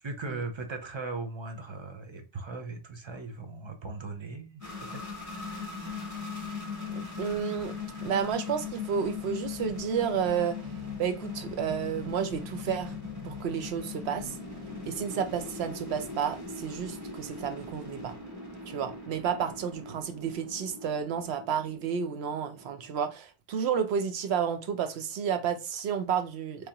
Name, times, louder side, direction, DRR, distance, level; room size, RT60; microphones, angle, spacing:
voice 1, 0.0-5.7, right 3 dB, 40° right, 0.4 m, -39 dB
sound 1, 4.6-23.1, left 4 dB, 15° right, 1.7 m, -40 dB
voice 2, 6.9-7.7 8.0-10.6 11.0-12.9 13.2-14.3 14.9-18.1 18.7-26.7, right 7 dB, 75° right, 0.8 m, -31 dB
3.5 x 3.2 x 2.8 m
omnidirectional pair, 1.1 m